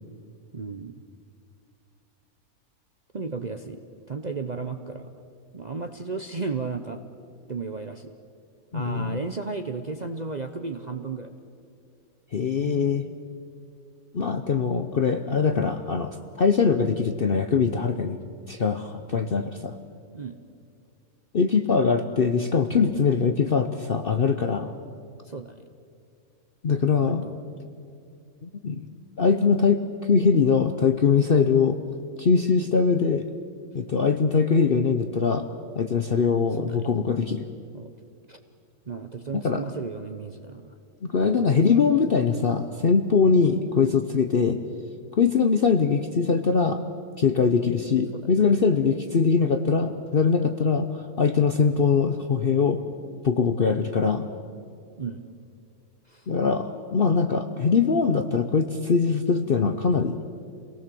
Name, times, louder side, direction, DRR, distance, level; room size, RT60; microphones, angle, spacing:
voice 1, 0.5-1.0 3.1-5.1 5.5-7.0 7.5-8.1 8.7-11.3 12.6-13.0 20.1-20.4 25.2-25.6 26.9-27.3 36.6-36.8 37.7-37.9 38.3-38.4 38.9-40.8 41.4-41.5 48.1-48.3 55.0-55.2 56.1-56.3, right 4 dB, 35° right, 7 dB, 0.8 m, -34 dB
voice 2, 8.7-9.2 12.3-13.0 14.1-18.2 18.5-19.7 21.3-24.7 26.6-27.2 28.4-28.9 29.2-31.8 32.2-33.3 33.7-35.5 35.8-37.5 39.4-39.6 41.0-44.6 45.1-46.8 47.2-52.8 53.2-54.3 56.3-60.2, left 5 dB, 45° left, 7 dB, 0.9 m, -22 dB
27.5 x 18.0 x 7.7 m, 2.4 s
omnidirectional pair, 1.6 m